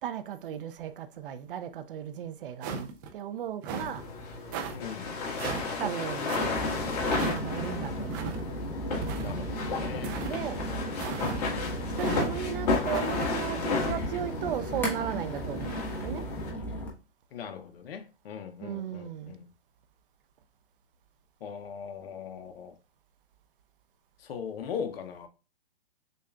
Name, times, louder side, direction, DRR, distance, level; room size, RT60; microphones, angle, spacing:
voice 1, 0.0-4.1 5.8-6.3 7.0-8.3 10.2-10.6 11.8-16.2 18.6-19.4, right 9 dB, 60° right, 0.6 m, -36 dB
sound 1, 2.6-3.1 3.6-4.0 4.5-4.8 5.4-5.7 6.3-6.5 7.1-7.4 8.1-8.4 9.0-9.5 10.0-10.3 11.0-11.4 12.0-12.3 12.9-13.3, right 5 dB, 20° right, 0.4 m, -36 dB
sound 2, 3.7-16.5, left 4 dB, 40° left, 1.5 m, -33 dB
voice 2, 4.7-5.1 9.2-10.2 17.3-19.4 21.4-22.7 24.2-25.3, left 7 dB, 70° left, 0.7 m, -39 dB
sound 3, 6.3-16.9, right 1 dB, 5° left, 0.8 m, -36 dB
6.5 x 2.3 x 2.2 m
hypercardioid pair, 145°, 30 cm